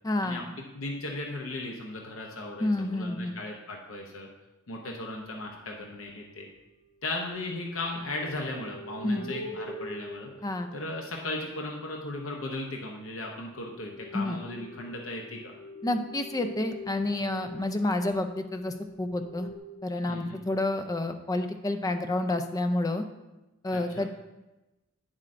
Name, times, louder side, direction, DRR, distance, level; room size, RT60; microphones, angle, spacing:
voice 1, 0.0-0.5 2.6-3.4 9.0-9.3 10.4-10.7 14.1-14.4 15.8-19.5 19.8-23.1 23.6-24.1, left 2 dB, 15° left, 7 dB, 0.4 m, -29 dB
voice 2, 0.7-4.3 4.7-6.5 7.0-10.3 10.7-15.5 20.1-20.4 23.7-24.1, left 2 dB, 65° left, 0 dB, 0.7 m, -36 dB
sound 1, 5.8-6.0 6.9-11.4 13.6-19.6, left 1 dB, 40° left, 0.9 m, -44 dB
8.8 x 7.4 x 2.6 m, 1.0 s
head